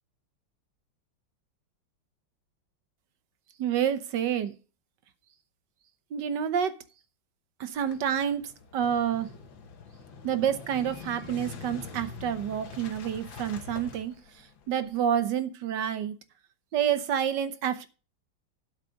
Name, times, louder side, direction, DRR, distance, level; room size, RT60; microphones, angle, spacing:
voice 1, 3.6-4.5 6.1-6.7 7.6-9.3 10.2-14.2 14.7-16.2 16.7-17.9, right 9 dB, 65° right, 1.5 m, -28 dB
Motorcycle / Engine starting, 7.8-15.0, left 5 dB, 80° left, 2.0 m, -45 dB
12.0 x 5.0 x 6.3 m
omnidirectional pair, 2.1 m